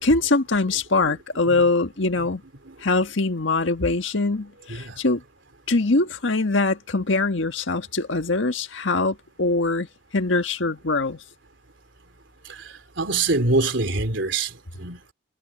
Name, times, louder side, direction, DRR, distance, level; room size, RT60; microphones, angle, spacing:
voice 1, 0.0-2.4 2.8-5.2 5.7-9.9 10.1-11.2, left 3 dB, 75° left, 1.6 m, -23 dB
voice 2, 4.7-5.0 12.5-15.0, right 3 dB, 70° right, 3.5 m, -25 dB
head